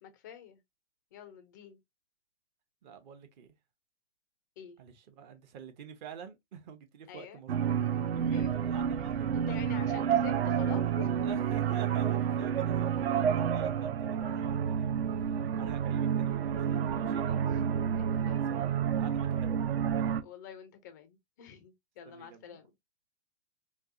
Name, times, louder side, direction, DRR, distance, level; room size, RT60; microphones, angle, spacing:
voice 1, 0.0-0.6 1.1-1.8 4.6-4.8 7.1-7.4 8.3-8.6 9.3-11.2 17.2-17.4 18.0-18.4 20.2-22.7, left 9 dB, 15° left, 0.3 m, -48 dB
voice 2, 2.8-3.5 4.8-7.7 8.1-10.3 11.2-16.5 17.0-17.2 18.3-19.8 22.0-22.6, right 7 dB, 40° right, 0.8 m, -47 dB
sound 1, 7.5-20.2, right 8 dB, 55° right, 0.5 m, -29 dB
4.4 x 2.0 x 2.5 m
hypercardioid pair, 120°, 37 cm